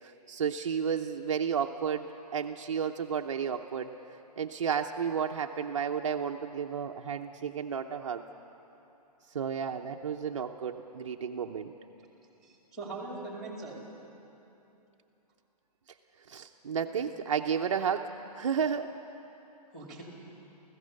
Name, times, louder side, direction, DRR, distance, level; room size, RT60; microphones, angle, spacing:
voice 1, 0.0-3.9 4.4-8.2 9.3-11.7 16.3-18.9, right 7 dB, 50° right, 3 dB, 0.8 m, -32 dB
voice 2, 12.4-13.8 19.7-20.0, right 3 dB, ahead, 0 dB, 2.4 m, -41 dB
28.0 x 16.0 x 6.5 m, 3.0 s
hypercardioid pair, 180°, 21 cm